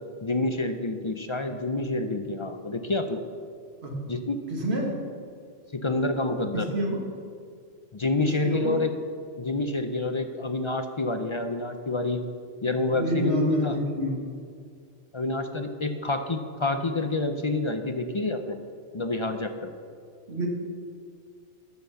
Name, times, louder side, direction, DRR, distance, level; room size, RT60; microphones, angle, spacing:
voice 1, 0.2-3.2 4.1-4.4 5.7-6.7 7.9-8.9 9.4-12.2 12.6-13.8 15.1-18.6 18.9-19.7, left 2 dB, 35° left, 7 dB, 0.5 m, -28 dB
voice 2, 4.5-5.0 6.5-7.0 8.2-8.7 12.9-14.2 20.3-20.5, right 1 dB, 65° right, 0 dB, 2.0 m, -28 dB
12.5 x 5.9 x 7.0 m, 2.2 s
omnidirectional pair, 1.2 m